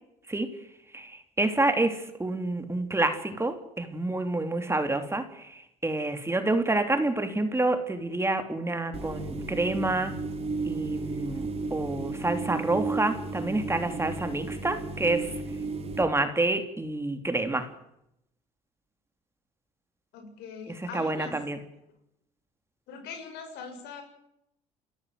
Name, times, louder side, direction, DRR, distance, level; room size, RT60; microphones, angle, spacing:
voice 1, 0.9-10.1 10.6-15.3 16.0-17.7 20.8-21.6, right 2 dB, 15° right, 7 dB, 3.4 m, -28 dB
sound 1, 8.9-16.0, right 3 dB, 35° right, 5.0 m, -34 dB
voice 2, 20.1-21.4 22.9-24.0, left 5 dB, 75° left, 5 dB, 7.2 m, -41 dB
30.0 x 13.5 x 7.9 m, 0.79 s
supercardioid pair, 75°, 17 cm